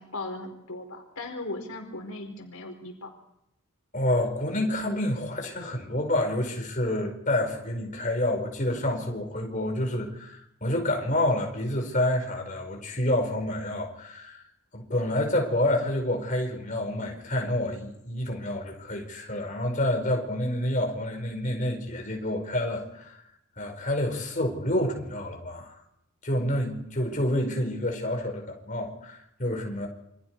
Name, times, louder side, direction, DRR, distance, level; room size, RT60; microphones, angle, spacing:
voice 1, 0.0-3.1, left 2 dB, 75° left, 3 dB, 5.0 m, -37 dB
voice 2, 3.9-14.4 14.7-23.2 23.6-25.7 26.2-29.9, left 1 dB, 35° left, 2 dB, 5.1 m, -28 dB
28.5 x 25.5 x 4.8 m, 0.81 s
head